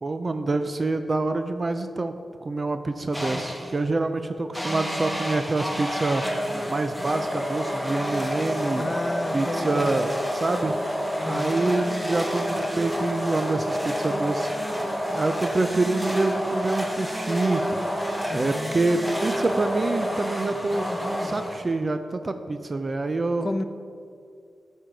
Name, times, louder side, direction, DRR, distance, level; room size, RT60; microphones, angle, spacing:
voice 1, 0.0-2.1 2.4-6.2 6.7-8.8 9.3-10.8 11.2-14.5 15.1-17.6 18.3-20.9 21.2-23.5, right 2 dB, 30° right, 8 dB, 0.4 m, -26 dB
sound 1, 3.1-3.8 4.5-21.9, equal, ahead, 0.9 m, -29 dB
voice 2, 8.8-10.2 11.2-11.7 18.3-18.8 23.4-23.6, left 2 dB, 25° left, 9 dB, 0.5 m, -32 dB
13.0 x 4.4 x 5.1 m, 2.4 s
wide cardioid pair, 115°, 0 cm